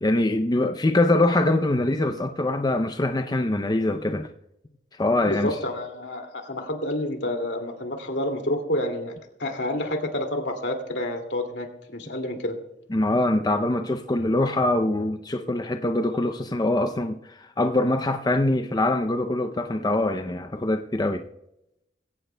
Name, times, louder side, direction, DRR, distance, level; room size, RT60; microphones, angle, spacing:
voice 1, 0.0-4.3 5.0-5.5 12.9-21.2, left 2 dB, 20° left, 0.5 m, -23 dB
voice 2, 5.2-9.1 9.4-12.6, left 1 dB, 75° left, 2.4 m, -29 dB
21.5 x 17.0 x 2.2 m
head